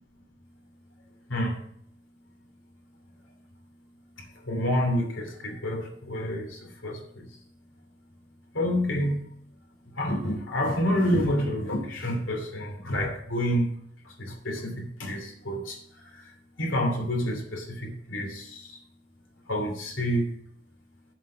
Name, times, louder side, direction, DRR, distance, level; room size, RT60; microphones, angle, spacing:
voice 1, 1.3-1.6 4.2-7.3 8.5-9.2 9.9-13.7 14.0-16.3 16.6-18.8 19.5-20.4, equal, 80° left, 2 dB, 2.7 m, -28 dB
7.4 x 5.6 x 7.2 m, 0.67 s
head